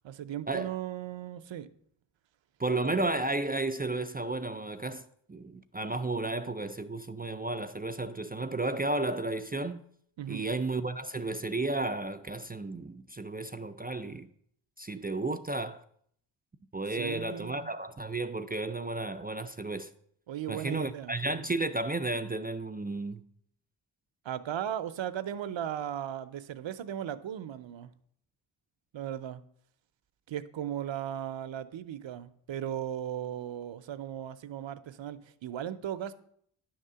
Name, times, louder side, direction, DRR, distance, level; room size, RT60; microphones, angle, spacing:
voice 1, 0.0-1.7 10.2-10.5 16.9-17.7 20.3-21.5 24.2-27.9 28.9-29.4 30.3-36.1, right 10 dB, 75° right, 0.7 m, -37 dB
voice 2, 2.6-5.0 5.3-9.8 10.3-14.3 14.8-15.8 16.7-19.9 20.5-23.2, right 2 dB, 20° right, 0.4 m, -33 dB
10.5 x 3.7 x 6.8 m
cardioid pair, 70°, 46 cm